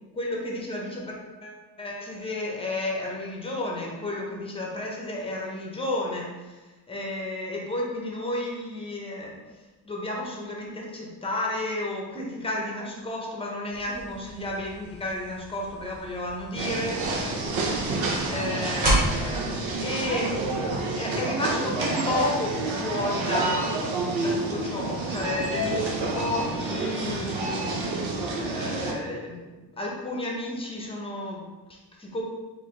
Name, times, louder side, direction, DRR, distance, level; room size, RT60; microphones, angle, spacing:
voice 1, 0.1-6.6 6.9-9.4 9.9-17.1 18.2-23.7 24.2-27.6 28.3-29.4 29.8-32.2, left 1 dB, 15° left, -1 dB, 0.7 m, -32 dB
sound 1, 13.7-20.8, right 1 dB, 20° right, 1.2 m, -32 dB
sound 2, 16.5-28.9, right 2 dB, 85° right, 0.9 m, -29 dB
4.7 x 2.6 x 3.6 m, 1.2 s
wide cardioid pair, 160°, 44 cm